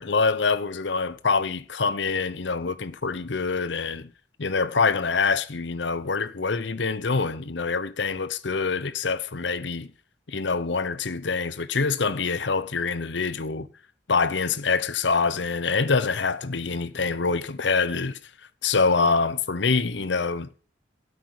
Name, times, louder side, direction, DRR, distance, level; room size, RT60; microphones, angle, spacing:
voice 1, 0.0-4.1 4.4-9.9 10.3-13.7 14.1-18.2 18.6-20.5, left 4 dB, 70° left, 0.8 m, -25 dB
9.5 x 8.2 x 8.6 m
head